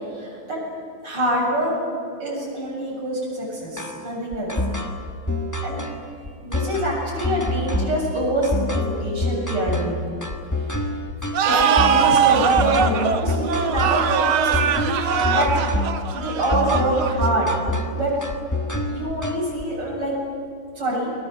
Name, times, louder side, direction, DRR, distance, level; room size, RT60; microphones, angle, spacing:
voice 1, 0.1-0.6 1.0-1.7 2.2-4.5 5.6-5.8 6.4-10.1 10.7-10.8 11.5-15.5 16.1-17.5 17.9-18.2 18.9-20.1 20.8-21.1, right 1 dB, 50° right, -4 dB, 8.7 m, -25 dB
sound 1, 3.8-19.6, left 1 dB, 10° left, 1.2 m, -27 dB
sound 2, 11.3-17.8, right 7 dB, 70° right, 2.0 m, -21 dB
29.5 x 21.5 x 7.8 m, 2.4 s
omnidirectional pair, 2.4 m